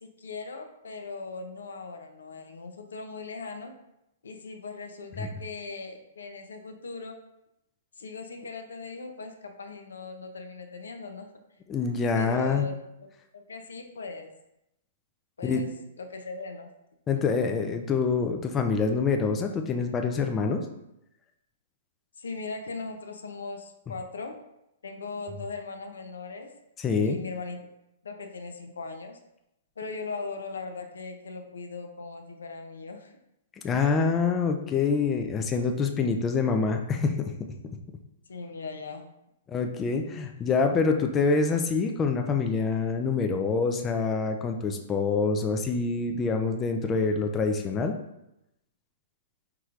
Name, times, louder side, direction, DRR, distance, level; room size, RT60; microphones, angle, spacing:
voice 1, 0.0-3.8 4.2-7.2 8.0-11.3 12.1-12.7 13.3-14.3 15.4-15.7 16.0-16.7 17.2-17.3 22.2-24.4 24.8-26.5 27.0-27.6 28.0-29.2 29.8-33.1 38.3-39.0, left 4 dB, 80° left, 5 dB, 0.5 m, -39 dB
voice 2, 11.7-12.6 15.4-15.6 17.1-20.7 26.8-27.2 33.6-37.3 39.5-47.9, left 4 dB, 20° left, 4 dB, 0.4 m, -26 dB
4.6 x 3.0 x 2.4 m, 0.84 s
hypercardioid pair, 125°, 0 cm